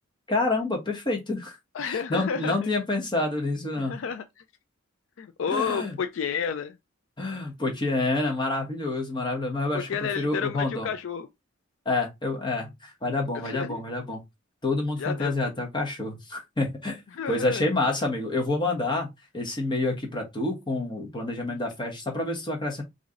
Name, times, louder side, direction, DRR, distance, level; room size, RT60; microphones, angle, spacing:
voice 1, 0.3-1.6 1.8-4.0 5.5-5.9 7.2-10.9 11.8-14.2 14.6-17.0 17.3-19.1 19.3-22.8, left 2 dB, 20° left, 1.1 m, -28 dB
voice 2, 1.7-2.7 3.8-4.2 5.2-6.8 9.7-11.3 13.4-13.8 15.0-15.3 17.1-17.6, left 6 dB, 65° left, 0.3 m, -31 dB
3.1 x 2.6 x 3.7 m
head